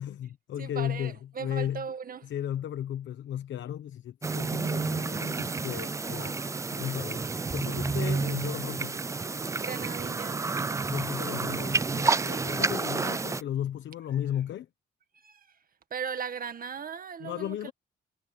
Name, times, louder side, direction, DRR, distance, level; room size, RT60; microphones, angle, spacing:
voice 1, 0.0-1.9 2.2-6.4 6.7-7.2 7.5-9.0 10.9-14.7 17.2-17.7, left 11 dB, 70° left, 1.1 m, -35 dB
voice 2, 0.6-2.3 9.6-10.5 15.2-15.5 15.9-17.7, right 6 dB, 45° right, 1.8 m, -37 dB
sound 1, 4.2-13.4, right 4 dB, 15° right, 0.3 m, -30 dB
cardioid pair, 90°, 20 cm